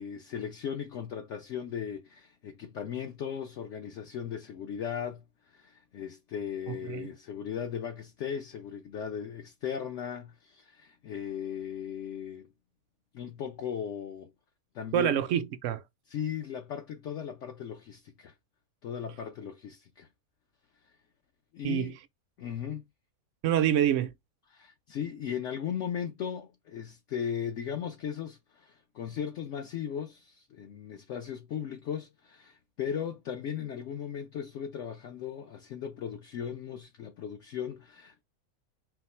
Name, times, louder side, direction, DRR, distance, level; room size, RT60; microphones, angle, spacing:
voice 1, 0.0-12.5 13.1-14.3 14.7-15.2 16.1-18.3 18.8-20.1 21.5-21.9 22.4-22.8 24.5-38.2, left 8 dB, 65° left, 0.9 m, -37 dB
voice 2, 6.7-7.1 14.9-15.8 21.6-21.9 23.4-24.1, right 10 dB, 70° right, 0.8 m, -27 dB
4.5 x 2.1 x 4.2 m
omnidirectional pair, 1.5 m